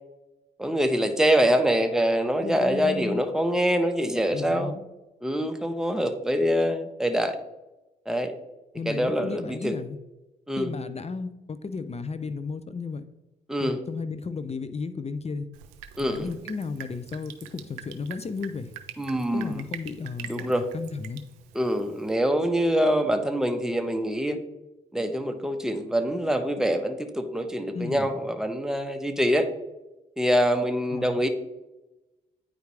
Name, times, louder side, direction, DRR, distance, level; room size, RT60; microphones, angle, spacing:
voice 1, 0.6-4.7 5.2-7.4 8.1-8.3 8.9-9.8 10.5-10.7 13.5-13.8 16.0-16.3 19.0-19.6 20.3-20.7 21.5-24.4 24.9-29.5 30.2-31.3, equal, 5° right, 5 dB, 1.2 m, -25 dB
voice 2, 2.4-3.2 4.3-4.9 8.7-10.0 10.6-13.0 13.6-15.5 16.0-18.7 19.3-21.2 27.7-28.1 30.9-31.2, left 4 dB, 35° left, 11 dB, 0.6 m, -34 dB
Drip, 15.5-22.1, right 11 dB, 85° right, 0.5 m, -44 dB
9.3 x 4.8 x 3.4 m, 1.0 s
hypercardioid pair, 45°, 19 cm